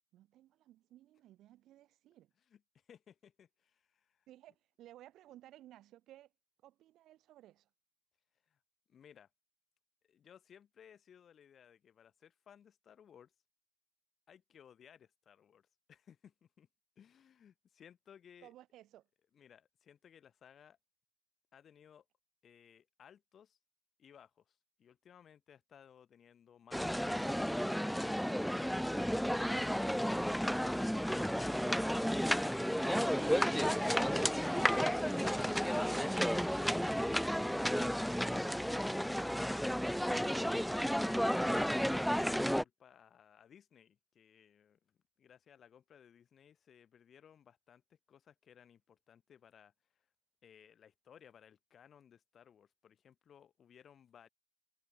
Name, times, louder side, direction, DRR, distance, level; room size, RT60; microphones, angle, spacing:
voice 1, 0.1-2.3 4.3-6.3 6.6-7.7 18.4-19.1, right 14 dB, 35° right, 5.0 m, -58 dB
voice 2, 2.5-4.3 8.5-8.6 8.9-9.3 10.0-13.3 14.3-16.7 17.0-18.5 19.3-20.8 21.5-22.1 22.4-23.6 24.0-27.8 28.3-31.8 40.4-50.1 50.4-54.3, left 8 dB, 25° left, 7.4 m, -61 dB
sound 1, 26.7-42.6, equal, ahead, 0.4 m, -32 dB
figure-of-eight pair, 90°, 0 cm